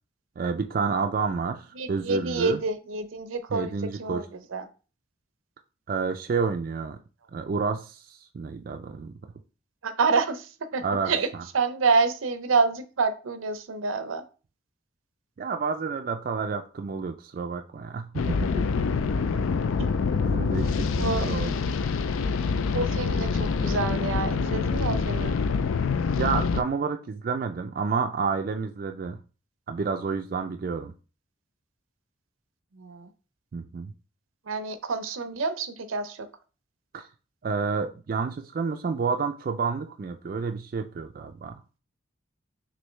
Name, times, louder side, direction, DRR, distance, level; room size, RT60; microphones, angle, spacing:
voice 1, 0.4-2.6 3.5-4.3 5.9-7.0 7.3-9.1 10.8-11.4 15.4-18.6 19.4-19.5 20.1-21.5 26.1-29.2 29.7-30.9 33.5-33.9 36.9-37.1 37.4-41.6, right 5 dB, 45° right, 5 dB, 0.3 m, -30 dB
voice 2, 1.8-4.7 9.8-11.3 11.5-14.2 19.8-19.9 21.0-21.3 22.7-25.4 32.7-33.1 34.5-36.3, right 4 dB, 90° right, 9 dB, 0.6 m, -28 dB
sound 1, 18.1-26.6, left 5 dB, 90° left, 0.4 m, -26 dB
6.2 x 2.6 x 3.2 m, 0.35 s
head